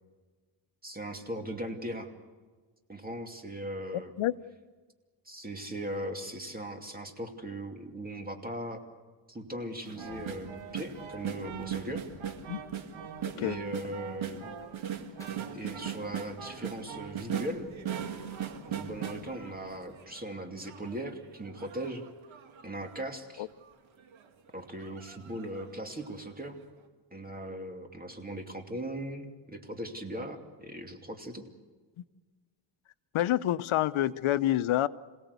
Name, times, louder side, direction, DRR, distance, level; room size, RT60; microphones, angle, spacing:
voice 1, 0.8-2.1 2.9-4.1 5.2-8.8 9.3-12.0 13.3-14.4 15.5-17.7 18.7-22.0 22.6-23.5 24.5-26.6 27.1-31.5, right 1 dB, 20° right, 4 dB, 2.7 m, -39 dB
voice 2, 3.9-4.3 12.5-12.6 13.4-13.6 23.4-23.5 32.0-32.1 33.1-34.9, left 13 dB, 90° left, 14 dB, 0.8 m, -28 dB
sound 1, 9.9-20.1, left 1 dB, 5° left, 5.8 m, -56 dB
sound 2, 9.9-20.2 20.6-23.1 23.6-23.7 24.0-24.3 24.8-25.7 26.1-26.2, right 8 dB, 75° right, 2.2 m, -39 dB
27.0 x 17.5 x 8.2 m, 1.4 s
cardioid pair, 105°, 47 cm